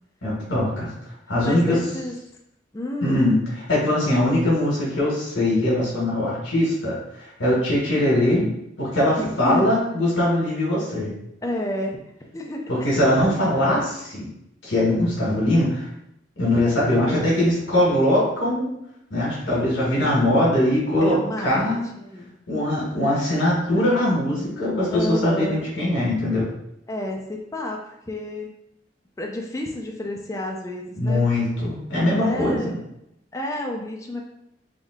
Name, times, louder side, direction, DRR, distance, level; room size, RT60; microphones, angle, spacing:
voice 1, 0.2-0.9 1.3-1.8 3.0-3.4 3.7-8.5 8.8-11.1 12.7-14.3 14.6-15.9 16.4-18.7 19.1-21.2 21.4-21.8 22.5-26.5 31.0-32.7, left 1 dB, 85° left, -6 dB, 1.3 m, -21 dB
voice 2, 1.4-2.2 2.7-3.3 9.2-9.7 11.4-12.9 21.0-22.3 23.8-23.9 24.9-25.7 26.9-28.5 29.2-31.2 32.2-32.8 33.3-34.2, left 1 dB, 15° left, 1 dB, 0.4 m, -30 dB
3.5 x 2.6 x 3.6 m, 0.80 s
head